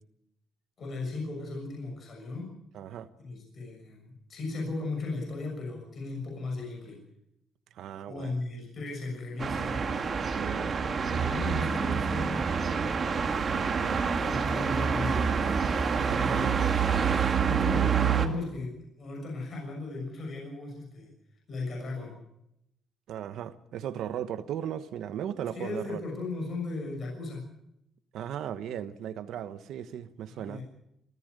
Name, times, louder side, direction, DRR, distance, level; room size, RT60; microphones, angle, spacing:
voice 1, 0.8-2.5 3.2-7.0 8.1-9.8 11.0-13.0 14.2-15.5 16.2-16.6 17.4-21.1 21.5-22.1 25.5-27.4 30.3-30.6, left 3 dB, 35° left, 6.5 m, -36 dB
voice 2, 2.7-3.1 7.7-8.4 10.3-11.4 13.4-14.0 16.0-16.8 17.1-17.2 23.1-26.0 28.1-30.6, right 10 dB, 65° right, 1.2 m, -37 dB
sound 1, 9.4-18.3, right 6 dB, 30° right, 1.9 m, -27 dB
27.5 x 14.5 x 6.7 m
cardioid pair, 165°, 0 cm